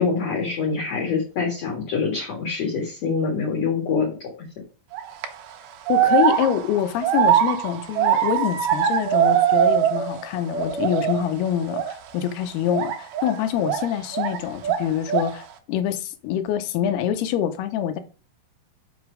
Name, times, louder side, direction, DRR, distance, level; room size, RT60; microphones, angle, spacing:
voice 1, 0.0-4.1, left 5 dB, 50° left, 2.5 m, -25 dB
sound 1, 4.9-5.3 5.9-10.2 10.5-11.3 11.7-11.9 12.7-14.4 14.6-15.4, right 10 dB, 75° right, 2.1 m, -22 dB
voice 2, 5.9-18.0, left 10 dB, 85° left, 2.7 m, -25 dB
6.4 x 6.0 x 4.9 m
omnidirectional pair, 4.7 m